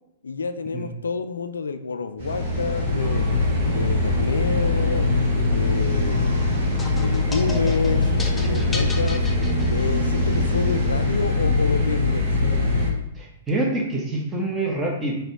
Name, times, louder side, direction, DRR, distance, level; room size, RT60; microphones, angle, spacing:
voice 1, 0.2-3.3 3.6-5.1 5.5-6.5 7.0-9.3 9.7-12.7, left 4 dB, 75° left, 9 dB, 0.3 m, -29 dB
sound 1, 2.2-12.9, left 2 dB, 60° right, 1.0 m, -22 dB
sound 2, 2.3-11.3, left 2 dB, 35° left, 0.9 m, -41 dB
sound 3, 6.8-10.2, left 2 dB, 10° left, 0.5 m, -35 dB
voice 2, 13.1-15.1, right 2 dB, 15° right, -1 dB, 0.9 m, -26 dB
3.9 x 2.8 x 3.4 m, 0.82 s
figure-of-eight pair, 110°, 0 cm